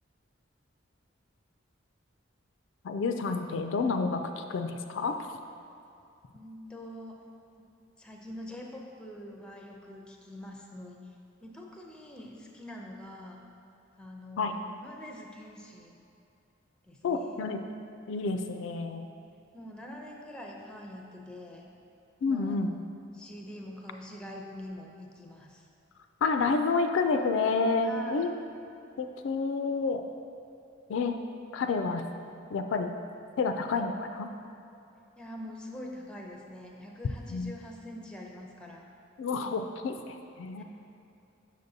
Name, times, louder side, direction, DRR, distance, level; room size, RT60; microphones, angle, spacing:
voice 1, 2.8-5.1 14.4-14.5 17.0-17.6 18.1-19.1 22.2-22.7 26.2-28.3 29.0-30.0 30.9-31.2 31.5-32.0 32.5-33.0 33.4-34.3 37.3-37.5 39.2-40.6, left 4 dB, 65° left, 6 dB, 0.3 m, -29 dB
voice 2, 6.3-7.2 7.6-7.7 8.0-11.0 11.4-13.4 14.0-16.0 16.8-17.4 19.5-21.7 22.3-22.6 23.1-25.7 27.8-28.3 35.2-38.9 40.6-40.7, left 1 dB, 5° left, 0 dB, 0.5 m, -45 dB
6.6 x 6.3 x 2.7 m, 2.7 s
head